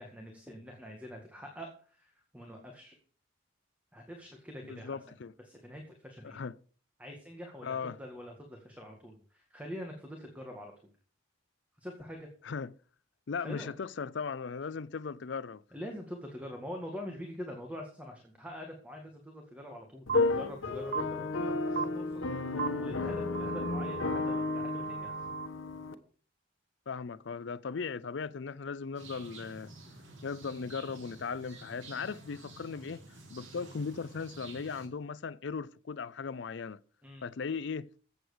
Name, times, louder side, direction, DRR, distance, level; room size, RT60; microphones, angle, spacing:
voice 1, 0.0-3.0 3.9-5.0 5.4-6.4 7.0-10.7 11.8-12.3 13.4-13.7 15.7-25.2 37.0-37.2, equal, 5° right, 1.8 m, -45 dB
voice 2, 4.6-5.3 6.2-6.6 7.6-8.0 12.4-12.7 13.3-15.6 26.9-29.7 30.2-33.0 33.3-36.8 37.2-37.9, left 5 dB, 65° left, 0.5 m, -38 dB
sound 1, 20.1-25.9, left 3 dB, 85° left, 1.3 m, -32 dB
sound 2, 20.1-20.2 20.9-21.0 21.8-21.9 22.6-22.7 23.3-25.5, right 7 dB, 50° right, 0.4 m, -36 dB
sound 3, 28.9-34.9, right 2 dB, 70° right, 3.0 m, -50 dB
15.0 x 7.9 x 5.0 m
head